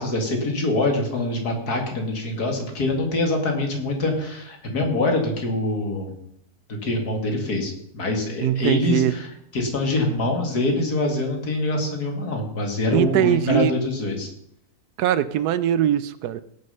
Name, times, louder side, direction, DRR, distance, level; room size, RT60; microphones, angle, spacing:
voice 1, 0.0-6.1 6.7-9.3 9.5-14.3, left 2 dB, 80° left, 3 dB, 2.7 m, -24 dB
voice 2, 8.4-9.1 12.9-13.7 15.0-16.4, right 11 dB, 85° right, 16 dB, 1.2 m, -21 dB
17.0 x 6.5 x 5.6 m, 0.74 s
omnidirectional pair, 1.6 m